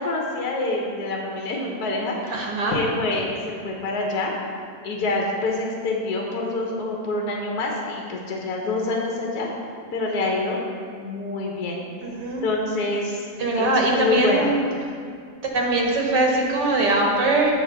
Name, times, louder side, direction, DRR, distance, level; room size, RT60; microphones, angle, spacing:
voice 1, 0.0-4.3 4.8-9.5 9.9-10.6 10.9-11.8 12.4-13.2 13.6-14.5, left 2 dB, 65° left, 0 dB, 1.4 m, -26 dB
voice 2, 2.3-2.8 12.0-12.5 13.4-14.5 15.4-17.5, right 2 dB, 80° right, -1 dB, 1.9 m, -21 dB
7.0 x 5.0 x 6.8 m, 2.2 s
omnidirectional pair, 1.8 m